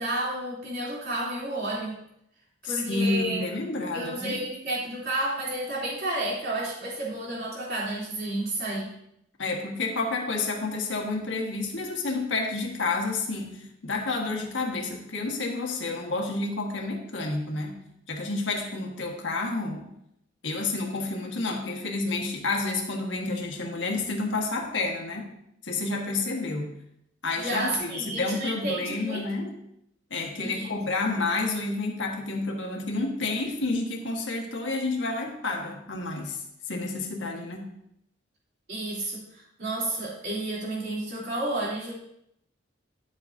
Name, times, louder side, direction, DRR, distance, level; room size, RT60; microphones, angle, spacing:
voice 1, 0.0-2.0 2.6-3.4 3.9-8.9 27.4-29.2 30.4-30.7 38.7-41.9, right 1 dB, 55° right, -5 dB, 3.2 m, -31 dB
voice 2, 2.6-4.4 9.4-19.9 20.4-25.3 25.6-26.7 27.2-29.6 30.1-36.4 36.7-37.7, left 3 dB, 70° left, 1 dB, 1.6 m, -30 dB
11.0 x 7.6 x 2.7 m, 0.77 s
head